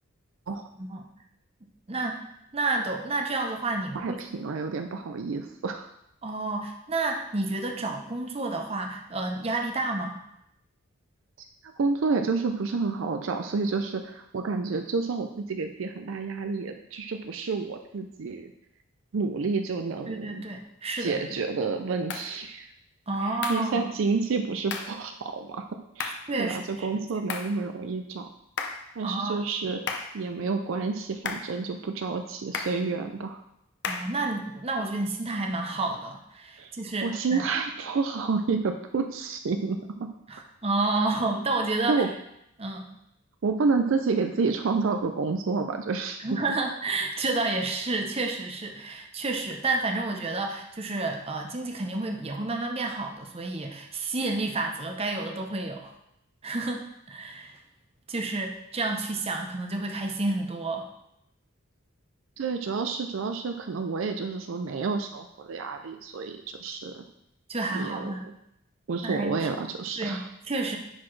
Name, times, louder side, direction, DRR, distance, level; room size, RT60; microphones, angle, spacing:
voice 1, 1.9-2.2 2.5-4.2 6.2-10.2 20.1-21.3 23.1-23.9 26.3-26.9 29.0-29.4 33.9-37.4 40.3-42.1 42.6-42.9 46.2-55.9 56.4-57.6 58.1-60.9 67.5-68.2 69.0-69.3 70.0-70.8, right 2 dB, 30° right, 3 dB, 0.7 m, -30 dB
voice 2, 3.9-5.9 11.8-18.5 19.1-20.4 21.0-22.7 23.2-25.7 26.0-28.3 29.0-29.8 30.1-33.4 36.6-36.7 37.0-40.1 41.9-42.1 43.4-46.3 62.4-67.0 67.7-68.1 68.9-70.3, right 4 dB, 65° right, 6 dB, 0.4 m, -29 dB
sound 1, 22.1-22.3 23.4-23.7 24.7-25.0 26.0-26.3 27.3-27.6 28.6-28.9 29.9-30.2 31.2-31.5 32.5-32.8 33.8-34.2, left 5 dB, 55° left, 0.7 m, -33 dB
10.0 x 4.2 x 3.2 m, 0.79 s
head